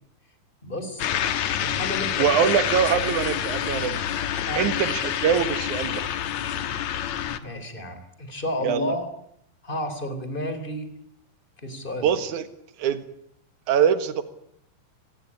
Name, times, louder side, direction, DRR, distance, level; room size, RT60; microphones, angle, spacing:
voice 1, 0.6-1.1 1.6-2.3 4.5-4.7 7.4-9.1 9.6-10.9 11.6-12.2, left 1 dB, 15° left, 9 dB, 2.9 m, -31 dB
sound 1, 1.0-7.4, left 10 dB, 85° left, 1.6 m, -27 dB
voice 2, 2.2-4.0 4.5-6.1 8.6-8.9 12.0-12.4 12.8-13.0 13.7-14.2, right 8 dB, 60° right, 11 dB, 2.2 m, -23 dB
25.0 x 19.0 x 9.8 m, 0.72 s
omnidirectional pair, 5.2 m